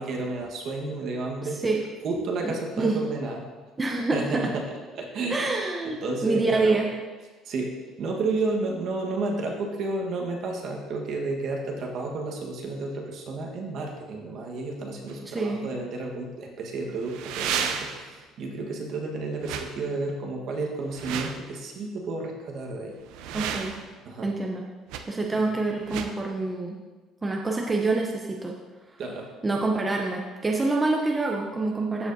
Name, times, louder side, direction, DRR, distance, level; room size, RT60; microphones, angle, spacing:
voice 1, 0.0-1.6 2.0-3.5 4.1-5.5 5.8-6.8 7.4-23.0 24.0-24.3 25.3-25.5 29.0-29.3, right 3 dB, 55° right, 1 dB, 1.3 m, -31 dB
voice 2, 2.4-3.0 3.8-4.5 5.3-6.9 15.3-15.6 23.3-23.7 24.2-24.6 25.1-26.8 27.2-28.5 29.4-32.1, right 3 dB, 15° right, 0 dB, 0.7 m, -26 dB
sound 1, 15.1-15.2 17.0-18.1 19.4-19.7 20.8-21.4 23.0-23.9 24.9-25.0 25.8-26.1, right 7 dB, 85° right, 0.6 m, -32 dB
14.0 x 5.0 x 2.7 m, 1.3 s
cardioid pair, 140°, 0 cm